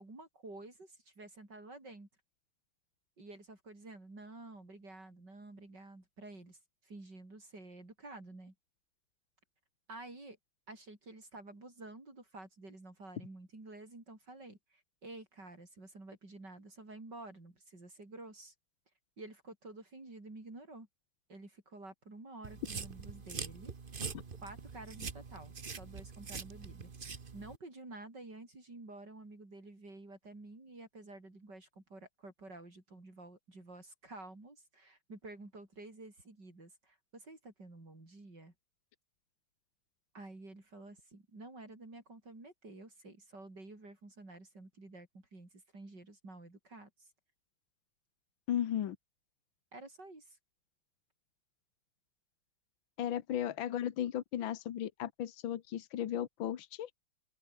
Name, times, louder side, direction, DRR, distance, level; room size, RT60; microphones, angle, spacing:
voice 1, 0.0-2.1 3.2-8.5 9.9-10.4 10.7-18.5 19.2-20.9 21.3-23.7 24.4-38.5 40.1-47.1 49.7-50.4, right 2 dB, 55° right, 6.8 m, -51 dB
sound 1, 22.4-27.6, right 5 dB, 30° right, 1.2 m, -44 dB
voice 2, 48.5-49.0 53.0-57.1, left 11 dB, 75° left, 1.9 m, -35 dB
open air
omnidirectional pair, 2.2 m